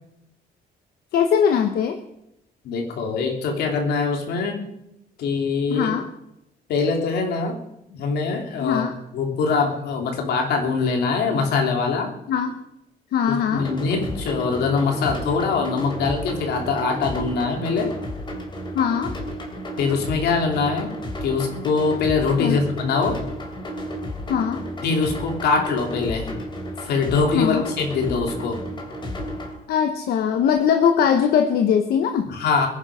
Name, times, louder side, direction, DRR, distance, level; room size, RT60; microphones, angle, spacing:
voice 1, 1.1-2.0 5.7-6.1 8.6-8.9 12.3-12.6 13.1-13.7 18.7-19.2 22.4-22.6 24.3-24.6 27.3-27.7 29.7-32.3, left 7 dB, 70° left, 7 dB, 1.1 m, -21 dB
voice 2, 2.6-4.6 5.2-5.9 6.7-7.6 7.9-8.9 9.1-12.1 13.3-17.9 19.8-20.9 21.2-23.2 24.8-26.3 26.8-28.6 32.3-32.7, left 4 dB, 85° left, 3 dB, 3.1 m, -23 dB
sound 1, 13.5-29.5, equal, 30° left, 3.0 m, -32 dB
22.0 x 10.5 x 5.0 m, 0.84 s
cardioid pair, 170°, 16 cm